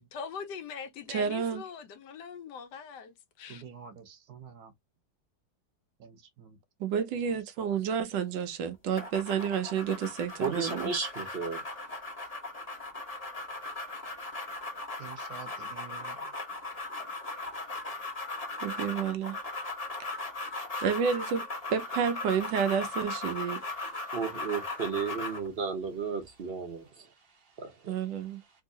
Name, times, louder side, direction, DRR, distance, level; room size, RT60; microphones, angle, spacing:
voice 1, 0.0-3.6, left 6 dB, 75° left, 1.3 m, -42 dB
voice 2, 1.1-1.6 6.8-10.9 18.6-19.4 20.8-23.6 27.9-28.4, right 7 dB, 85° right, 1.4 m, -30 dB
voice 3, 3.5-4.7 6.0-6.6 7.6-7.7 15.0-16.1, right 7 dB, 65° right, 1.3 m, -48 dB
sound 1, 9.0-25.5, left 2 dB, 25° left, 1.1 m, -38 dB
voice 4, 10.4-11.6 24.1-26.8 27.6-27.7, right 5 dB, 50° right, 0.7 m, -33 dB
3.5 x 2.7 x 2.7 m
omnidirectional pair, 1.9 m